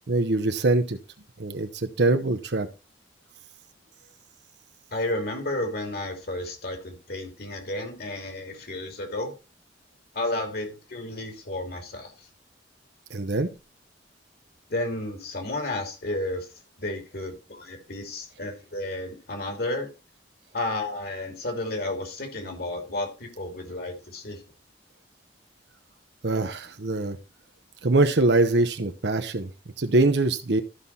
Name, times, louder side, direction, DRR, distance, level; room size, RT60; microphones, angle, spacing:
voice 1, 0.1-1.0 1.4-2.7 13.1-13.5 26.2-27.2 27.8-29.5 29.8-30.6, right 2 dB, 70° right, 8 dB, 0.9 m, -23 dB
voice 2, 4.9-9.4 10.1-12.3 14.7-16.5 16.8-19.9 20.5-24.4, left 1 dB, 55° left, 4 dB, 2.7 m, -32 dB
13.0 x 5.6 x 4.2 m, 0.29 s
head